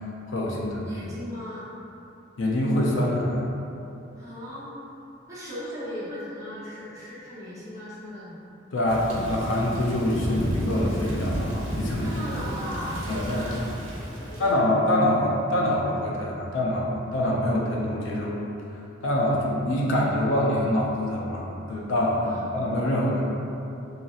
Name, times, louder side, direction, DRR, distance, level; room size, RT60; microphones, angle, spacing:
voice 1, 0.3-1.0 2.4-3.5 8.7-12.1 13.1-13.5 14.4-18.4 19.0-23.2, left 1 dB, 75° left, -3 dB, 0.4 m, -25 dB
voice 2, 0.8-1.7 4.2-4.7 5.3-8.3 12.0-13.6 14.2-14.5 22.2-22.4, equal, 15° right, -10 dB, 0.7 m, -37 dB
Thunder / Rain, 8.9-14.6, equal, 80° right, 0.5 m, -31 dB
2.9 x 2.7 x 2.3 m, 2.8 s
head